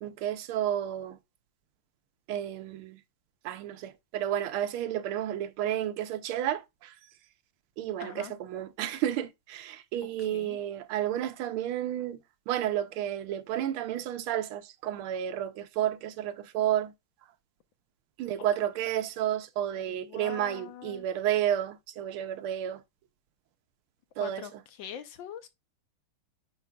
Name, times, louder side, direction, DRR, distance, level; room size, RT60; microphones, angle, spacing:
voice 1, 0.0-1.2 2.3-3.0 3.4-6.9 7.8-12.2 12.5-16.9 18.2-22.8 24.2-24.5, right 11 dB, 80° right, 1.5 m, -31 dB
voice 2, 8.0-8.3 10.0-10.6 19.7-21.0 24.2-24.5 24.8-25.5, left 9 dB, 70° left, 1.3 m, -43 dB
9.7 x 4.7 x 2.3 m
omnidirectional pair, 2.4 m